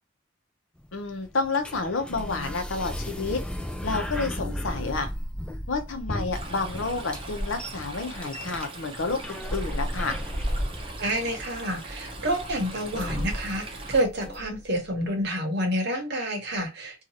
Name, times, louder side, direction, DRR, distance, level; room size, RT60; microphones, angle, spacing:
sound 1, 0.8-14.8, equal, 5° left, 0.3 m, -35 dB
voice 1, 0.9-3.4 3.8-5.1 5.7-10.1, left 3 dB, 80° left, 0.7 m, -30 dB
Stream, 6.3-14.0, right 1 dB, 30° right, 0.6 m, -37 dB
voice 2, 11.0-17.0, right 1 dB, 60° right, 0.9 m, -28 dB
2.7 x 2.4 x 2.7 m
head